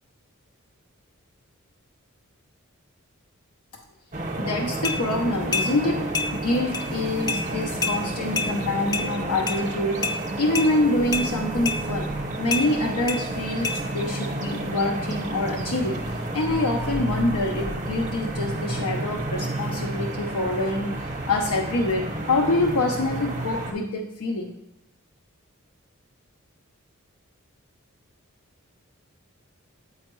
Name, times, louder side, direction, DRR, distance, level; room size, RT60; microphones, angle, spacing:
sound 1, 4.1-23.7, right 1 dB, 35° right, 0.7 m, -30 dB
voice 1, 4.4-6.1 6.3-12.1 12.4-20.9 21.2-24.5, left 2 dB, 85° left, 2 dB, 0.6 m, -26 dB
sound 2, 4.8-5.0 5.5-5.7 6.1-6.3 6.7-6.9 7.3-7.4 7.8-8.0 8.4-8.5 8.9-9.1 9.5-9.6 10.0-10.2 10.6-10.7 11.1-11.3 11.7-11.8 12.5-12.7 13.1-13.2 13.6-13.8, left 4 dB, 20° left, 0.4 m, -26 dB
8.5 x 4.4 x 3.0 m, 0.81 s
head